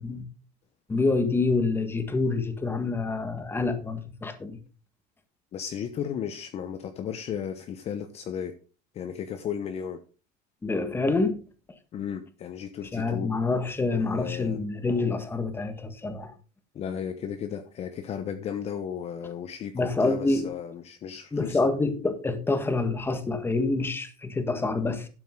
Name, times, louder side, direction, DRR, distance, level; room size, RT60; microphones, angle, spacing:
voice 1, 0.9-4.6 10.6-11.4 12.9-16.3 19.7-20.5 21.3-25.1, left 3 dB, 10° left, 1.6 m, -27 dB
voice 2, 5.5-8.5 8.9-10.0 11.9-13.3 14.0-14.6 16.7-21.8, left 8 dB, 30° left, 1.0 m, -35 dB
12.0 x 9.1 x 3.8 m
cardioid pair, 155°, 20 cm